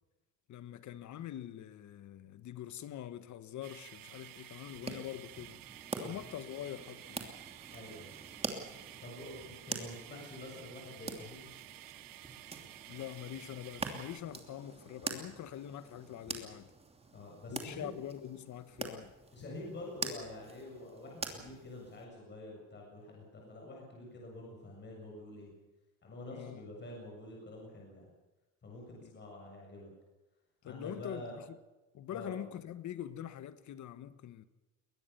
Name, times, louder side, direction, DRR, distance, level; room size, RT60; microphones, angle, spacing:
voice 1, 0.5-5.6 6.0-7.3 12.9-16.7 17.5-19.1 26.3-26.6 29.0-29.1 30.6-31.6 31.9-34.4, left 11 dB, 55° left, 1.5 m, -44 dB
sound 1, 3.6-14.2, right 14 dB, 70° right, 1.3 m, -52 dB
sound 2, 4.7-22.0, right 3 dB, 15° right, 2.9 m, -45 dB
voice 2, 7.7-8.1 9.0-11.5 17.1-18.0 19.3-25.5 26.0-28.1 28.6-29.9 30.6-31.4 32.1-32.4, left 1 dB, 30° left, 7.4 m, -47 dB
22.5 x 19.5 x 6.9 m
cardioid pair, 150°, 36 cm